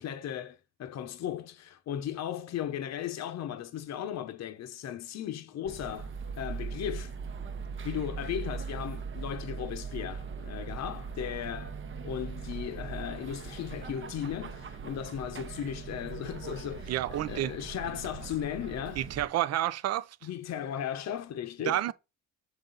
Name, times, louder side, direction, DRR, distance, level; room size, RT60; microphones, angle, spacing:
voice 1, 0.0-7.1 7.8-11.8 12.0-19.0 20.2-21.8, left 10 dB, 60° left, 0.7 m, -36 dB
sound 1, 5.6-19.3, right 5 dB, 40° right, 0.9 m, -40 dB
voice 2, 16.9-17.5 19.0-20.1 21.6-21.9, right 13 dB, 60° right, 0.5 m, -29 dB
6.7 x 3.9 x 3.8 m
cardioid pair, 80°, 30 cm